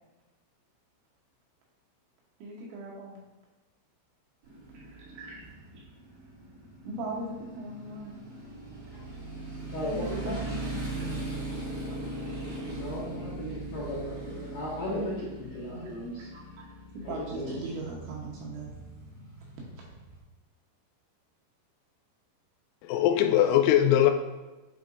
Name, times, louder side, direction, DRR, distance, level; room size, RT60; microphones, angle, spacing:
voice 1, 2.4-3.2 4.7-5.4 6.8-8.2 9.9-10.9 15.7-15.9 16.3-16.7 16.9-18.7 19.8-19.9, right 2 dB, 75° right, -3 dB, 3.0 m, -39 dB
Motorcycle, 4.4-20.2, right 2 dB, 90° right, 1.1 m, -40 dB
voice 2, 9.7-10.4 12.7-16.3 17.0-17.7, left 1 dB, 60° left, -9 dB, 2.3 m, -36 dB
voice 3, 22.8-24.1, left 11 dB, 90° left, 6 dB, 3.4 m, -21 dB
11.0 x 4.1 x 2.6 m, 1.2 s
omnidirectional pair, 6.0 m